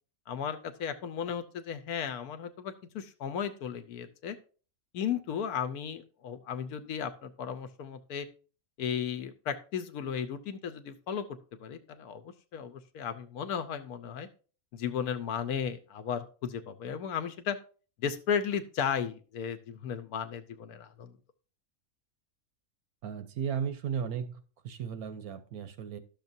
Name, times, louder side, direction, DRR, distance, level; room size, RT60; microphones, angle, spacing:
voice 1, 0.3-4.4 4.9-8.3 8.8-11.2 11.5-14.3 14.7-17.6 18.0-21.2, left 7 dB, 85° left, 10 dB, 1.3 m, -35 dB
voice 2, 23.0-26.0, right 7 dB, 75° right, 10 dB, 1.3 m, -35 dB
12.0 x 6.5 x 2.7 m, 0.37 s
omnidirectional pair, 1.6 m